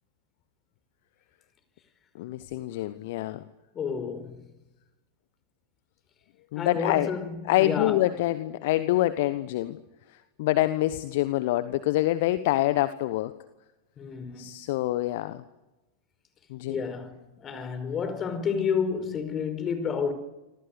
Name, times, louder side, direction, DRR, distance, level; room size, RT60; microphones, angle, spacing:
voice 1, 2.1-3.4 6.5-7.2 7.5-9.8 10.4-13.3 14.4-15.4 16.5-16.8, left 15 dB, 50° left, 1.2 m, -26 dB
voice 2, 3.7-4.4 6.6-8.0 14.0-14.7 16.7-20.1, left 6 dB, 25° left, 5.1 m, -30 dB
28.0 x 26.0 x 6.7 m
figure-of-eight pair, 90°, 0 cm